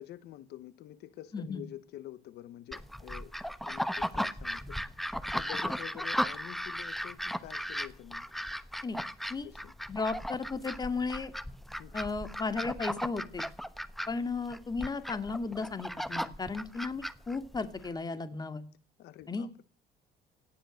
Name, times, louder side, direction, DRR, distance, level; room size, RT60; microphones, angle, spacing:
voice 1, 0.0-3.3 3.6-4.8 5.3-8.3 9.4-9.7 11.8-12.0 19.0-19.6, left 13 dB, 75° left, 1.3 m, -47 dB
voice 2, 1.3-1.6 8.8-9.0 9.3-9.5 9.9-11.3 11.9-13.4 14.1-18.6 19.3-19.5, left 4 dB, 25° left, 2.3 m, -35 dB
sound 1, 2.7-17.9, equal, ahead, 1.1 m, -36 dB
18.0 x 12.5 x 6.5 m
cardioid pair, 110°, 17 cm